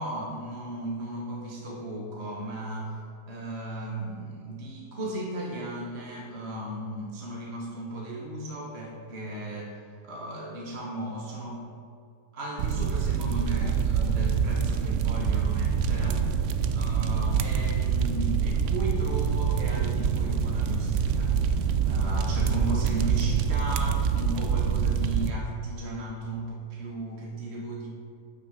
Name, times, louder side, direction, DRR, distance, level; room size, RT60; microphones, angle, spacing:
voice 1, 0.0-3.0 3.3-9.7 10.0-11.6 12.3-16.5 16.7-27.9, right 1 dB, 40° right, -2 dB, 1.4 m, -36 dB
sound 1, 12.6-25.3, right 7 dB, 70° right, 0.7 m, -26 dB
8.4 x 6.5 x 6.6 m, 2.3 s
omnidirectional pair, 1.8 m